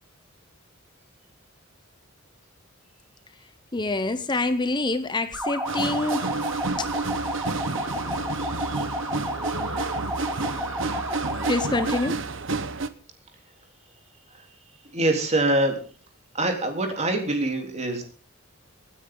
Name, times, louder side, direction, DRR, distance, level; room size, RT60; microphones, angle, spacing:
voice 1, 3.7-8.6 9.8-10.0 11.5-12.1, left 2 dB, 20° left, 11 dB, 0.8 m, -28 dB
sound 1, 5.3-12.1, equal, 5° right, 3.2 m, -32 dB
sound 2, 5.7-12.9, right 3 dB, 65° right, 1.1 m, -30 dB
voice 2, 14.9-15.8 16.3-18.1, right 2 dB, 35° right, 4 dB, 3.5 m, -24 dB
26.0 x 9.7 x 3.8 m, 0.38 s
head